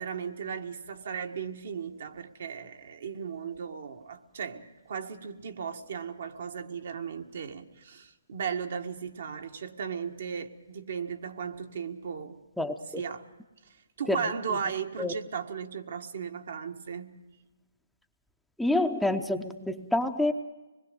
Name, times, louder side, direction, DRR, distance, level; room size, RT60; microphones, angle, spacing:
voice 1, 0.0-12.4 13.0-13.2 13.6-17.2, right 6 dB, 60° right, 1.6 m, -36 dB
voice 2, 12.6-13.0 14.1-14.2 15.0-15.1 18.6-20.3, left 2 dB, ahead, 0.7 m, -27 dB
25.0 x 21.0 x 5.2 m
hypercardioid pair, 145°, 0 cm